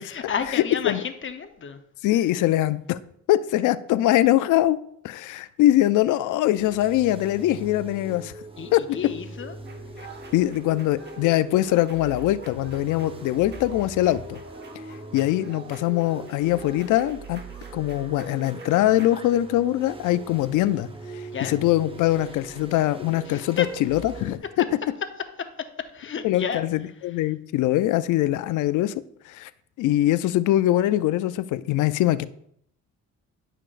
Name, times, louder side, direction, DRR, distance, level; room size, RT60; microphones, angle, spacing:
voice 1, 0.0-1.8 8.6-9.6 21.3-21.6 23.3-23.7 25.9-26.6, left 7 dB, 40° left, 7 dB, 0.8 m, -31 dB
voice 2, 2.0-3.0 3.3-4.8 5.0-8.3 8.7-8.8 10.3-14.4 15.1-17.4 17.7-24.4 26.2-29.5 29.8-32.3, left 14 dB, 80° left, 14 dB, 0.4 m, -22 dB
sound 1, 6.6-24.4, right 2 dB, 20° right, 0.7 m, -41 dB
sound 2, 9.6-19.1, right 4 dB, 35° right, 1.0 m, -48 dB
10.0 x 5.8 x 2.5 m, 0.69 s
cardioid pair, 90°, 30 cm